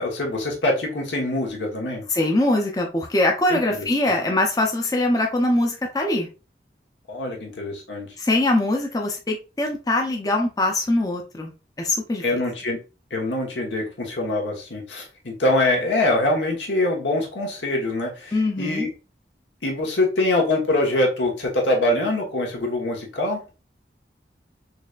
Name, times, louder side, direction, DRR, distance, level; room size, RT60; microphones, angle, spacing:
voice 1, 0.0-2.0 3.5-3.9 7.1-8.1 12.2-12.8 13.1-18.9 19.6-23.4, left 2 dB, 85° left, 0 dB, 1.2 m, -24 dB
voice 2, 2.1-6.3 8.2-11.5 11.8-12.2 18.3-18.8, left 2 dB, 20° left, 1 dB, 0.5 m, -22 dB
4.0 x 3.2 x 2.4 m, 0.31 s
head